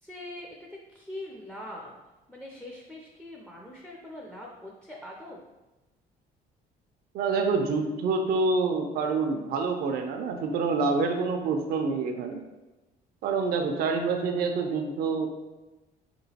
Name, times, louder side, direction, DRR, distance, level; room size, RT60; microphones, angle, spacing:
voice 1, 0.0-5.5, left 1 dB, 5° left, -2 dB, 0.4 m, -43 dB
voice 2, 7.1-12.4 13.2-15.3, right 4 dB, 65° right, 4 dB, 0.4 m, -27 dB
3.6 x 2.9 x 2.7 m, 1.1 s
cardioid pair, 110°, 17 cm